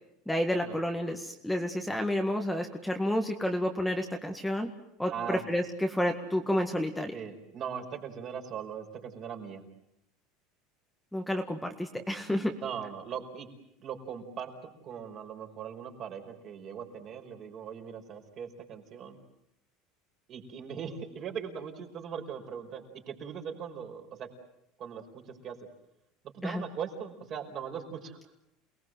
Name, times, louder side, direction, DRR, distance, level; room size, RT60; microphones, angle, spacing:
voice 1, 0.3-4.7 5.0-7.1 11.1-12.5 26.4-26.6, left 1 dB, 5° left, 4 dB, 1.9 m, -30 dB
voice 2, 5.1-5.4 7.1-9.6 12.6-13.5 13.8-19.2 20.3-24.3 24.8-25.6 26.3-28.3, right 7 dB, 40° right, 3 dB, 5.2 m, -40 dB
28.5 x 20.0 x 7.7 m, 0.81 s
supercardioid pair, 140°, 0 cm